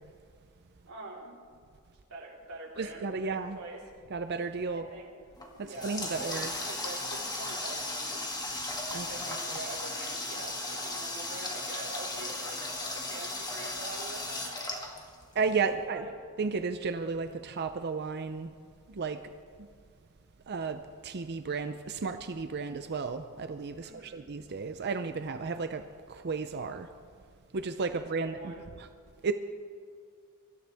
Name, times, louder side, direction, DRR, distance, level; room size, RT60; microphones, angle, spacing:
voice 1, 0.8-1.4 2.1-3.8 4.7-5.1 5.5-8.2 9.1-12.6 12.9-14.5 15.7-16.1 23.8-24.2 28.2-28.6, right 2 dB, 75° right, -4 dB, 3.9 m, -44 dB
voice 2, 2.8-3.6 4.1-4.8 5.6-6.5 8.9-9.1 15.3-16.1 16.4-18.5 18.9-19.2 19.6-19.7 20.5-26.9 27.5-28.9 29.2-29.3, right 4 dB, 50° right, 9 dB, 0.6 m, -33 dB
Water tap faucet, 5.4-15.6, left 2 dB, 20° left, 1.9 m, -36 dB
24.0 x 13.5 x 3.5 m, 2.1 s
head